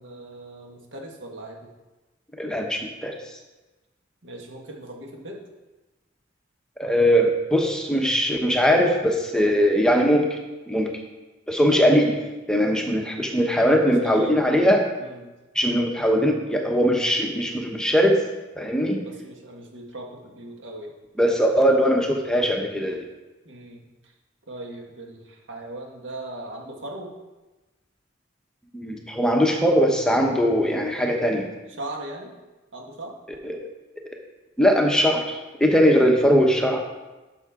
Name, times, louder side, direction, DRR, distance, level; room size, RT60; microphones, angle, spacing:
voice 1, 0.0-1.7 4.2-5.4 13.8-14.4 15.0-15.3 18.8-20.9 23.4-24.1 24.5-27.1 31.8-32.3 32.7-33.1 35.9-36.1, right 1 dB, 70° right, 1 dB, 1.6 m, -39 dB
voice 2, 2.4-3.2 6.8-10.3 10.7-10.9 11.5-12.2 12.5-14.9 15.5-18.2 18.6-19.0 21.2-23.0 28.7-31.5 33.4-33.6 34.6-36.8, equal, 5° left, 1 dB, 0.9 m, -20 dB
11.5 x 6.7 x 3.7 m, 1.1 s
head